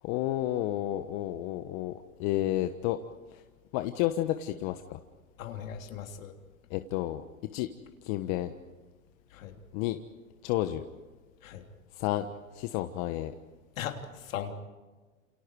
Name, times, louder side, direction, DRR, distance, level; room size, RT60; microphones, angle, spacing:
voice 1, 0.0-3.0 3.3-3.4 3.7-5.0 6.7-7.2 7.5-7.7 8.0-8.5 9.7-10.0 10.4-10.8 12.0-12.3 12.5-13.3, left 14 dB, 45° left, 8 dB, 1.3 m, -31 dB
voice 2, 5.4-6.3 9.3-9.5 11.4-11.7 13.8-14.5, left 9 dB, 70° left, 4 dB, 3.3 m, -38 dB
29.5 x 29.0 x 4.9 m, 1.3 s
hypercardioid pair, 100°, 42 cm